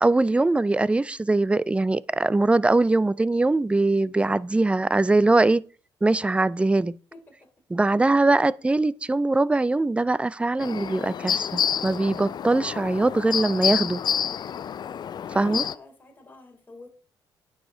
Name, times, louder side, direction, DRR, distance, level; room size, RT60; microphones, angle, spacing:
voice 1, 0.0-5.6 6.0-7.0 7.7-14.0 15.3-15.6, right 2 dB, 15° right, 0.4 m, -22 dB
sound 1, 10.6-15.7, left 8 dB, 50° left, 0.5 m, -28 dB
voice 2, 14.5-16.9, left 2 dB, 20° left, 3.6 m, -49 dB
9.5 x 7.2 x 3.8 m
cardioid pair, 75°, 9 cm